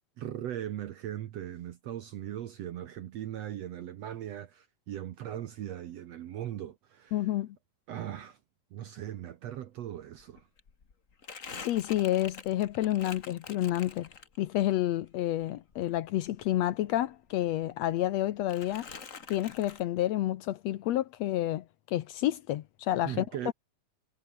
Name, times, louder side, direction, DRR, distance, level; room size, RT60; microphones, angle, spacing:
voice 1, 0.2-7.3 7.9-8.4 8.7-10.5 23.0-23.5, right 11 dB, 75° right, 1.5 m, -39 dB
voice 2, 7.1-7.5 11.6-14.1 14.4-18.9 19.3-23.5, left 13 dB, 90° left, 1.4 m, -29 dB
Crumpling crinkling, 9.8-9.9 10.2-14.6 15.0-17.2 17.4-18.2 18.5-19.8, left 5 dB, 40° left, 1.1 m, -47 dB
omnidirectional pair, 4.3 m